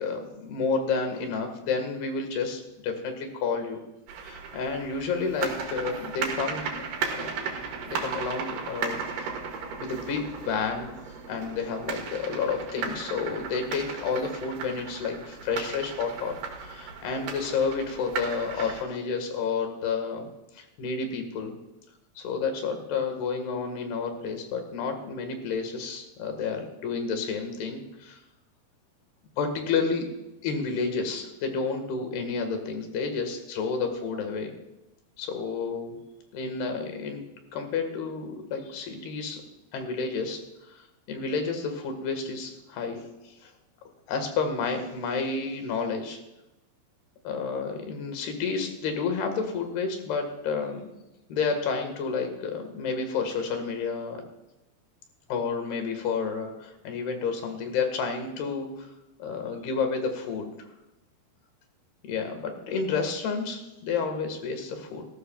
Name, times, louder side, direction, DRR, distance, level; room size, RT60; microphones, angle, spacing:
voice 1, 0.0-3.8 4.2-7.3 7.9-9.4 9.8-10.9 11.3-20.3 20.5-21.6 22.2-28.2 29.4-30.1 30.4-34.5 35.2-36.0 36.3-37.2 37.5-39.4 39.7-40.4 40.7-43.5 44.1-46.2 47.3-50.9 51.3-54.2 55.3-58.9 59.2-60.7 62.0-65.1, left 5 dB, 85° left, 5 dB, 3.8 m, -30 dB
sound 1, 4.1-18.8, right 5 dB, 80° right, 3.7 m, -36 dB
18.5 x 15.0 x 2.4 m, 0.97 s
omnidirectional pair, 4.5 m